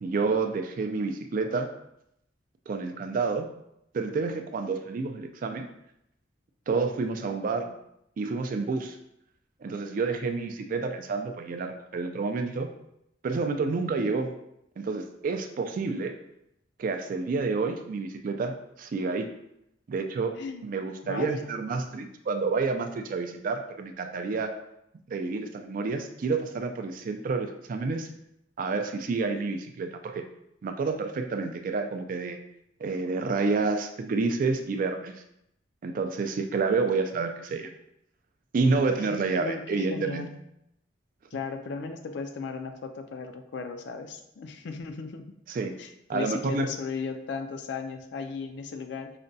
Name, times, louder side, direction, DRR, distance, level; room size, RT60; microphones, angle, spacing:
voice 1, 0.0-1.7 2.7-3.5 3.9-5.7 6.7-7.7 8.2-9.0 9.6-12.7 13.2-14.3 14.8-16.1 16.8-19.3 19.9-20.3 20.6-24.5 25.1-28.1 28.6-30.2 30.6-32.4 32.8-35.1 35.8-37.7 38.5-40.3 45.5-45.7 46.1-46.7, right 4 dB, 45° right, 6 dB, 0.3 m, -29 dB
voice 2, 21.0-21.5 39.0-40.4 41.3-45.2 45.8-49.1, left 4 dB, 65° left, 6 dB, 0.4 m, -36 dB
4.9 x 2.2 x 2.6 m, 0.79 s
head